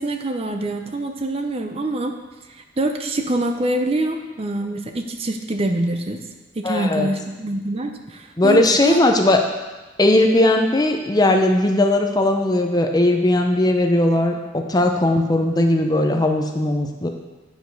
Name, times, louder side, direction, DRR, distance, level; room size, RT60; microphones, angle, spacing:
voice 1, 0.0-2.2 2.5-6.2 6.6-9.0, right 1 dB, 30° right, 5 dB, 0.6 m, -25 dB
voice 2, 6.6-7.1 8.4-9.4 10.0-17.1, left 1 dB, 20° left, 4 dB, 0.6 m, -18 dB
9.2 x 4.9 x 5.3 m, 1.2 s
head